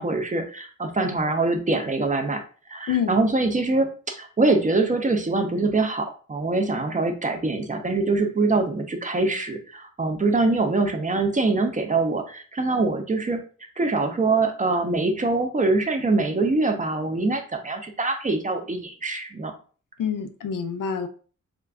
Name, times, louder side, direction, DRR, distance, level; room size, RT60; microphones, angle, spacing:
voice 1, 0.0-2.4 2.7-13.4 13.8-19.5, right 3 dB, 25° right, 5 dB, 0.4 m, -24 dB
voice 2, 20.0-21.1, left 7 dB, 90° left, 8 dB, 0.5 m, -26 dB
2.4 x 2.2 x 3.4 m, 0.39 s
wide cardioid pair, 140°, 31 cm